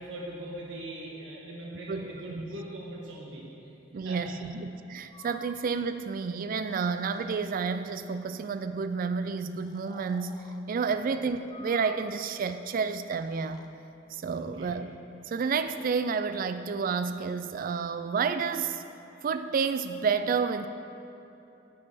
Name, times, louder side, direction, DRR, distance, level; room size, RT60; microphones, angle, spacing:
voice 1, 0.0-4.4 10.9-11.0 14.3-14.7, right 1 dB, 85° right, -4 dB, 1.4 m, -41 dB
voice 2, 1.9-2.5 3.9-13.6 14.1-15.0 15.3-18.8 19.2-20.7, right 5 dB, 50° right, 10 dB, 0.3 m, -30 dB
Breathing, 5.1-5.6 6.6-7.6 8.0-8.4 9.6-10.6 11.4-12.3 13.0-13.7, left 3 dB, 25° left, 0.6 m, -51 dB
10.0 x 5.4 x 8.2 m, 3.0 s
head